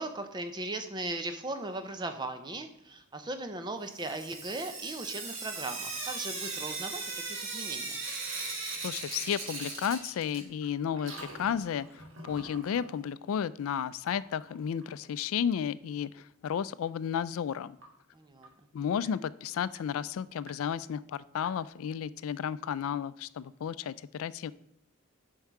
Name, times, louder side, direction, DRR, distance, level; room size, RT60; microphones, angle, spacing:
voice 1, 0.0-7.0 7.3-8.0 18.1-18.5, right 2 dB, 20° right, 7 dB, 0.7 m, -38 dB
Sink (filling or washing) / Drip, 3.9-10.7 10.9-12.9 14.1-14.2 14.5-14.6 14.8-14.9 17.8-17.9 18.4-18.5 19.0-19.1 19.7-19.8 20.5-20.6 21.4-21.5, right 3 dB, 65° right, 1.6 m, -39 dB
voice 2, 8.8-17.8 18.7-24.5, left 8 dB, 80° left, 18 dB, 0.3 m, -33 dB
7.0 x 5.5 x 4.7 m, 0.77 s
head